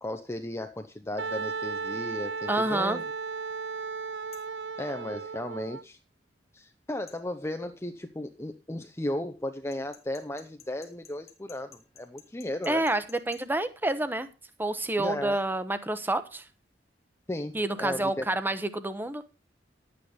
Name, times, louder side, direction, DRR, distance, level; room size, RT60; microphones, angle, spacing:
voice 1, 0.0-3.0 4.8-6.0 6.5-12.8 15.0-15.4 17.3-18.3, left 1 dB, 15° left, 6 dB, 0.8 m, -35 dB
Wind instrument woodwind instrument, 1.2-5.8, right 5 dB, 75° right, 0.6 m, -35 dB
voice 2, 2.5-3.0 12.7-14.3 14.6-16.5 17.5-19.2, right 2 dB, 10° right, 11 dB, 1.0 m, -28 dB
sound 1, 4.3-4.6 7.1-7.2 9.7-13.4, left 7 dB, 35° left, 1.7 m, -53 dB
11.0 x 8.6 x 5.0 m, 0.31 s
head